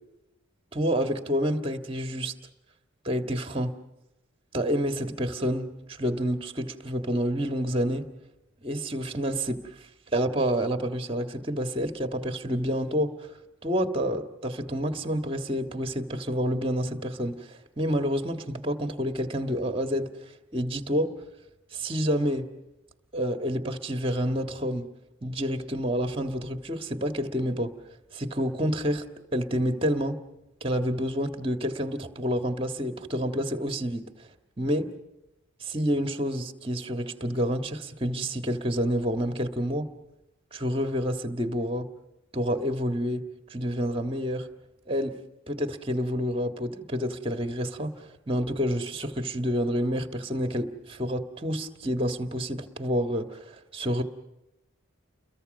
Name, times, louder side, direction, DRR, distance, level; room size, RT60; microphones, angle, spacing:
voice 1, 0.7-2.3 3.0-3.7 4.5-5.7 6.0-8.1 8.6-9.6 10.1-13.1 13.6-17.5 17.8-20.1 20.5-21.1 21.7-22.5 23.1-24.8 25.2-27.7 28.1-29.0 29.3-30.2 30.6-34.1 34.6-34.9 35.6-39.9 40.5-41.9 42.3-44.5 44.9-45.2 45.5-54.0, equal, 25° right, 1.7 m, -28 dB
30.0 x 22.5 x 5.4 m
head